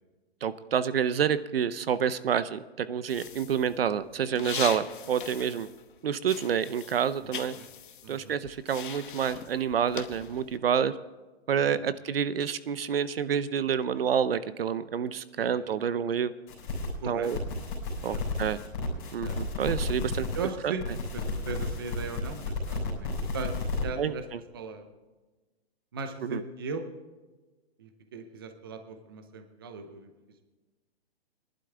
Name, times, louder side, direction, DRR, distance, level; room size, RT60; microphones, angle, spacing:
voice 1, 0.4-5.7 6.0-7.6 8.1-10.9 11.5-16.3 17.1-17.4 18.0-18.6 19.1-20.3 20.6-20.7 24.0-24.4 26.2-26.4, right 8 dB, 65° right, 15 dB, 0.7 m, -28 dB
sound 1, 3.1-6.0 6.2-10.6, left 8 dB, 50° left, 1.0 m, -41 dB
voice 2, 7.2-7.7 8.0-8.4 11.7-11.8 14.0-14.1 15.4-15.7 17.0-17.3 18.0-18.2 19.2-19.4 20.3-20.8 21.1-23.5 23.8-24.2 24.5-24.9 25.9-26.9 27.8-30.1, right 4 dB, 20° right, 8 dB, 0.6 m, -38 dB
sound 2, 16.5-16.9 17.2-20.5 20.8-23.8, left 3 dB, 20° left, 3.7 m, -33 dB
19.5 x 11.5 x 3.4 m, 1.2 s
hypercardioid pair, 175°, 32 cm